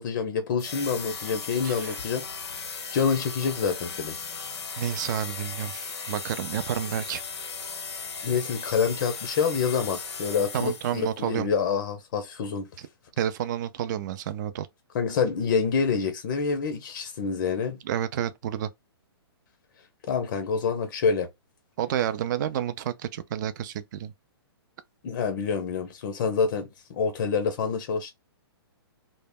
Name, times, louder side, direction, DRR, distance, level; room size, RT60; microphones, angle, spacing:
voice 1, 0.0-4.2 8.2-12.7 14.9-17.8 20.0-21.3 25.0-28.1, left 5 dB, 50° left, 0.5 m, -27 dB
sound 1, 0.6-11.2, left 5 dB, 90° left, 0.7 m, -37 dB
voice 2, 4.8-7.2 10.5-11.5 12.8-12.9 13.2-14.7 17.8-18.7 21.8-24.1, right 10 dB, 45° right, 0.4 m, -30 dB
2.1 x 2.0 x 3.4 m
hypercardioid pair, 140°, 14 cm